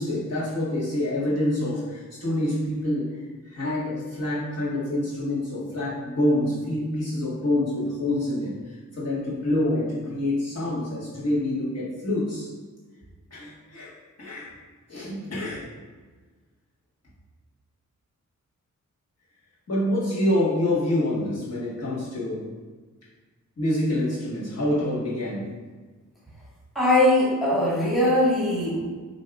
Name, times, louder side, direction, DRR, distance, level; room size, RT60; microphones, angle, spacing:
voice 1, 0.0-3.1 3.4-12.5 13.3-13.9 14.2-14.5 14.9-15.6 19.7-22.5 23.6-25.5, left 1 dB, 55° left, -8 dB, 1.4 m, -26 dB
voice 2, 26.7-28.8, left 1 dB, ahead, -8 dB, 1.4 m, -21 dB
7.0 x 2.7 x 2.3 m, 1.4 s
wide cardioid pair, 110°, 31 cm